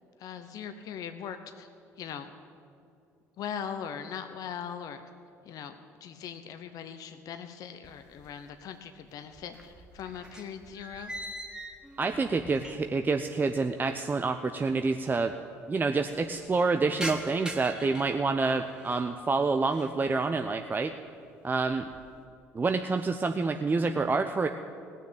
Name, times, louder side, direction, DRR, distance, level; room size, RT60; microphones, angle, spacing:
voice 1, 0.2-1.7 2.0-2.3 3.4-5.0 5.4-11.1, left 8 dB, 60° left, 8 dB, 0.8 m, -40 dB
sound 1, 7.8-8.7 9.0-13.1 13.4-13.5 14.3-14.4 14.6-14.7 15.0-15.5 15.9-19.1 19.5-20.0 20.5-20.9 21.3-22.2, right 1 dB, 10° right, 1.7 m, -43 dB
voice 2, 12.0-15.3 15.7-20.9 21.4-21.8 22.5-24.5, right 4 dB, 25° right, 6 dB, 0.7 m, -27 dB
17.5 x 6.6 x 8.8 m, 2.5 s
hypercardioid pair, 65°, 7 cm